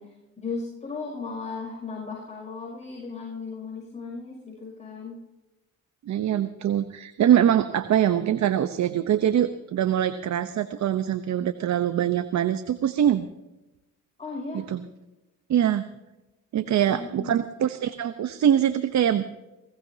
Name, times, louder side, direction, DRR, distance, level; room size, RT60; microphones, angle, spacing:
voice 1, 0.0-5.2 14.2-14.7 16.6-17.4, left 4 dB, 20° left, -2 dB, 6.1 m, -36 dB
voice 2, 6.1-13.3 14.7-14.8 15.5-15.9 16.5-19.2, right 10 dB, 60° right, 11 dB, 0.9 m, -23 dB
20.5 x 19.0 x 2.8 m, 1.0 s
cardioid pair, 80°, 32 cm